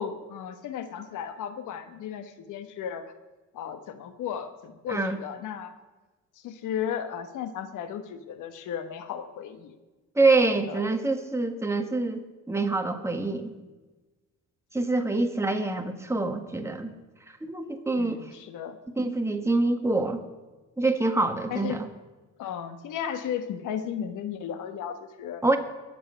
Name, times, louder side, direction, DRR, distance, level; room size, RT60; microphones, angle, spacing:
voice 1, 0.0-3.1 3.5-5.7 6.4-9.8 10.7-10.9 18.0-18.8 21.5-21.8 22.4-25.4, left 8 dB, 85° left, 9 dB, 1.2 m, -35 dB
voice 2, 10.1-13.5 14.7-16.9 17.4-18.2 19.0-20.2 20.8-21.9 25.4-25.6, right 3 dB, 10° right, 5 dB, 1.5 m, -25 dB
20.5 x 7.6 x 5.6 m, 1.2 s
cardioid pair, 90°, 30 cm